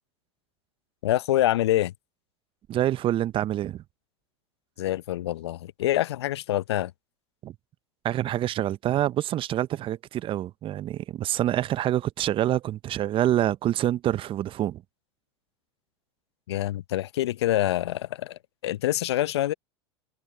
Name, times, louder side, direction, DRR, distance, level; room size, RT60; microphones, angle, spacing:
voice 1, 1.0-1.9 4.8-6.9 16.5-19.5, left 14 dB, 70° left, 0.8 m, -26 dB
voice 2, 2.7-3.8 7.4-7.5 8.0-14.8, right 12 dB, 35° right, 1.0 m, -26 dB
hypercardioid pair, 85°, 14 cm